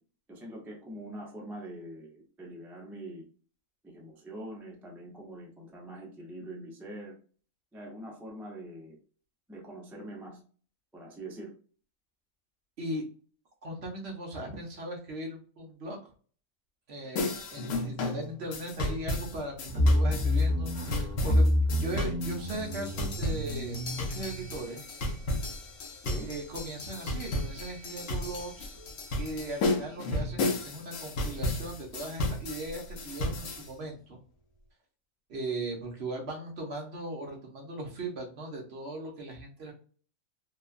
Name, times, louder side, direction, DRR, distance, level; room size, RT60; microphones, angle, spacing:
voice 1, 0.3-3.3 3.8-7.1 7.7-9.0 9.5-10.4 10.9-11.5 26.0-26.3, right 1 dB, 5° right, -2 dB, 0.3 m, -43 dB
voice 2, 13.6-16.1 16.9-24.8 26.2-28.8 29.2-34.2 35.3-39.7, right 1 dB, 55° right, 0 dB, 0.8 m, -38 dB
sound 1, 17.2-33.7, left 2 dB, 80° left, 1.2 m, -34 dB
sound 2, 19.6-24.6, left 1 dB, 35° left, 0.9 m, -28 dB
3.0 x 2.2 x 2.4 m, 0.41 s
omnidirectional pair, 1.5 m